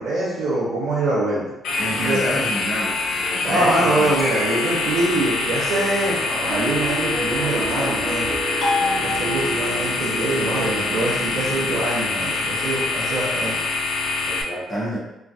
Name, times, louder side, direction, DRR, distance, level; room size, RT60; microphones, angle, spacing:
voice 1, 0.0-1.5 1.9-2.5 3.4-8.3 9.0-13.6, right 2 dB, 80° right, -10 dB, 0.8 m, -24 dB
sound 1, 1.6-14.4, left 3 dB, 85° left, 0.4 m, -25 dB
voice 2, 1.8-4.1 14.3-15.0, equal, 25° left, -6 dB, 0.9 m, -28 dB
sound 2, 4.2-5.1 8.6-9.8, left 2 dB, 40° left, 1.2 m, -27 dB
sound 3, 6.5-11.8, right 2 dB, 25° right, 0.5 m, -31 dB
3.2 x 2.2 x 2.5 m, 0.91 s
cardioid pair, 90°, 0 cm